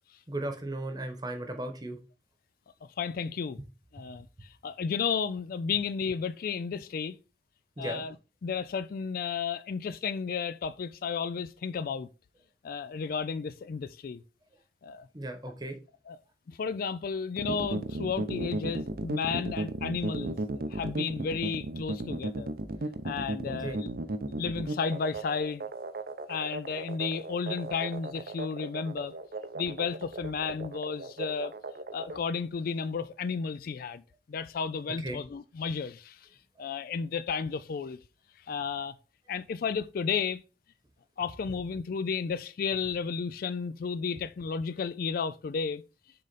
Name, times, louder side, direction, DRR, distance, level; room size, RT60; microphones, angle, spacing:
voice 1, 0.3-2.0 7.8-8.0 15.1-15.8 23.4-23.8 35.0-35.2, right 1 dB, 20° right, 1.1 m, -36 dB
voice 2, 3.0-3.6 3.9-7.2 7.8-8.1 8.4-12.1 12.6-14.2 14.8-15.1 16.1-16.2 16.5-20.4 20.7-22.5 23.0-23.9 24.3-25.7 26.3-29.1 29.5-31.5 31.9-34.0 34.3-36.3 36.6-38.0 38.5-38.9 39.3-40.4 41.2-45.8, left 5 dB, 55° left, 0.3 m, -33 dB
sound 1, 17.4-32.2, right 2 dB, 55° right, 0.7 m, -35 dB
6.6 x 3.8 x 4.1 m
head